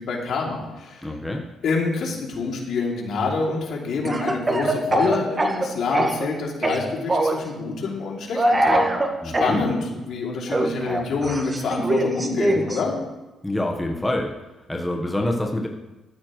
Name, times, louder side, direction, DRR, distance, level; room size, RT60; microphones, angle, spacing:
voice 1, 0.0-1.0 1.6-12.9, left 4 dB, 70° left, -2 dB, 2.9 m, -27 dB
voice 2, 1.0-1.4 9.2-9.7 13.4-14.3 14.7-15.7, left 1 dB, 10° left, 1 dB, 1.3 m, -26 dB
Speech / Cough, 4.0-6.3 6.6-7.4 8.3-9.6 10.5-12.8, right 1 dB, 25° right, 1.4 m, -22 dB
14.0 x 12.5 x 3.2 m, 1.1 s
cardioid pair, 90°, 0 cm